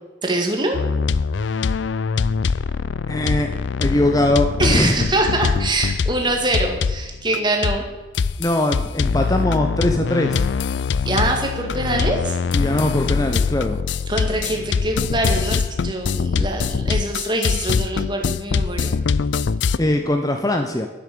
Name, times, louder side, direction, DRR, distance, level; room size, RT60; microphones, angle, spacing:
voice 1, 0.2-0.8 4.6-7.8 11.1-12.4 14.1-18.9, right 2 dB, 25° right, 2 dB, 2.0 m, -23 dB
sound 1, 0.7-7.4 7.6-19.8, left 5 dB, 75° left, 0.4 m, -23 dB
voice 2, 3.1-3.5 3.8-5.0 8.4-10.4 12.5-13.8 19.8-20.9, left 1 dB, 20° left, 5 dB, 0.7 m, -21 dB
10.0 x 9.9 x 6.8 m, 1.1 s
head